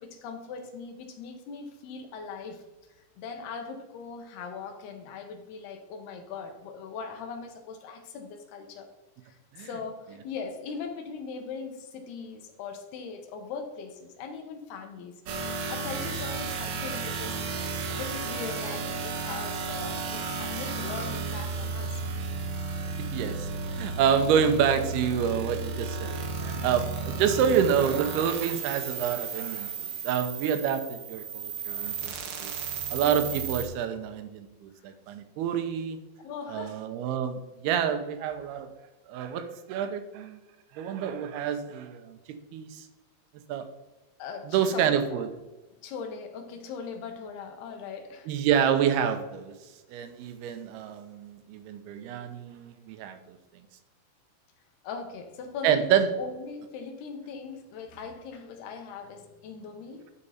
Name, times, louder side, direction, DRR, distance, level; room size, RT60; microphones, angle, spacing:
voice 1, 0.0-2.6 3.0-8.9 9.2-15.2 15.7-17.4 17.7-22.0 26.6-26.8 32.6-32.7 36.2-36.8 44.2-45.2 45.8-48.3 54.8-60.1, left 5 dB, 85° left, 5 dB, 3.2 m, -40 dB
sound 1, 15.3-33.7, right 4 dB, 70° right, 1.8 m, -33 dB
voice 2, 23.0-32.6 32.9-36.0 36.5-38.7 39.1-40.4 40.7-42.2 42.5-42.8 43.5-43.7 44.5-45.3 48.3-49.5 49.9-53.4 55.6-56.1, right 8 dB, 85° right, 9 dB, 2.8 m, -28 dB
11.5 x 5.4 x 4.3 m, 1.1 s
omnidirectional pair, 4.5 m